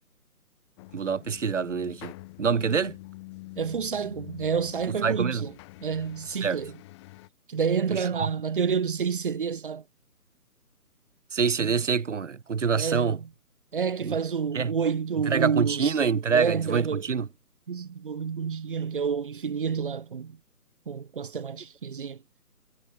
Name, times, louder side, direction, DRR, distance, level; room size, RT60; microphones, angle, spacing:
sound 1, 0.8-7.3, left 21 dB, 20° left, 3.1 m, -46 dB
voice 1, 0.9-2.1 2.4-3.0 5.0-5.5 6.4-6.6 7.9-8.3 11.3-13.2 14.0-14.2 14.5-14.7 15.3-17.3, right 6 dB, 50° right, 2.5 m, -26 dB
voice 2, 3.6-5.5 5.8-6.8 7.5-9.8 11.6-11.8 12.7-13.3 13.7-16.0 16.3-17.1 17.7-20.4 20.9-22.2, right 6 dB, 35° right, 1.1 m, -29 dB
figure-of-eight pair, 145°, 46 cm